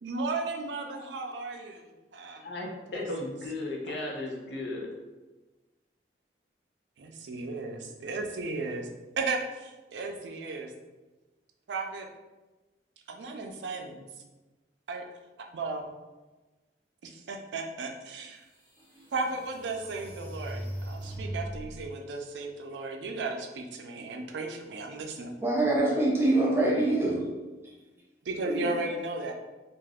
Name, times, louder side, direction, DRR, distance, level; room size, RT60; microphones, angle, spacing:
voice 1, 0.0-1.8 2.1-2.5 7.0-8.9 9.2-10.7 11.7-12.1 13.1-14.1 14.9-15.0 15.5-15.9 17.0-18.4 19.1-25.4 28.2-29.3, right 3 dB, 85° right, 3 dB, 0.4 m, -35 dB
voice 2, 2.4-4.9, left 2 dB, 85° left, -1 dB, 0.6 m, -35 dB
sound 1, 18.1-18.2 18.8-21.9, right 1 dB, 10° left, 1.0 m, -39 dB
voice 3, 25.4-27.3 28.4-28.7, right 2 dB, 15° right, -5 dB, 0.6 m, -25 dB
2.4 x 2.3 x 3.4 m, 1.2 s
head